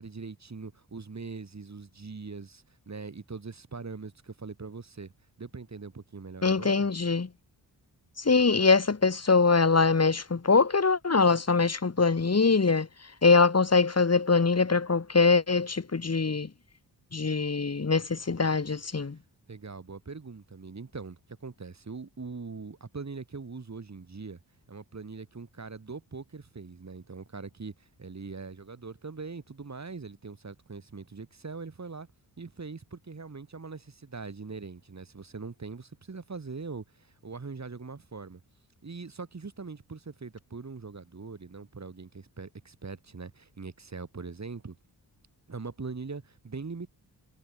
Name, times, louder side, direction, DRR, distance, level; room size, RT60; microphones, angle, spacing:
voice 1, 0.0-5.1 5.4-6.9 19.5-24.4 24.7-27.7 28.0-32.1 32.4-36.8 37.2-38.4 38.8-44.8 45.5-46.9, right 4 dB, 40° right, 6.3 m, -41 dB
voice 2, 6.4-7.3 8.2-12.9 13.2-16.5 17.1-19.2, left 4 dB, 40° left, 3.8 m, -23 dB
cardioid pair, 55°, 40 cm